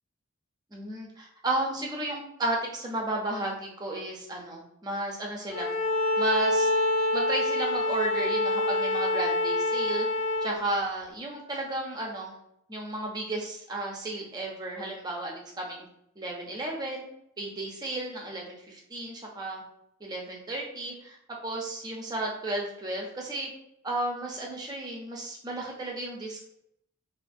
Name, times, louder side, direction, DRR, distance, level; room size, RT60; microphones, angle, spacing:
voice 1, 0.7-5.7 6.2-6.7 7.1-10.1 10.4-12.3 12.7-15.9 16.2-17.0 17.4-19.6 20.0-21.2 21.4-23.5 23.8-26.4, right 2 dB, 20° right, -1 dB, 0.4 m, -33 dB
Bowed string instrument, 5.5-10.6, left 2 dB, 60° left, 0.6 m, -26 dB
2.4 x 2.4 x 2.5 m, 0.75 s
head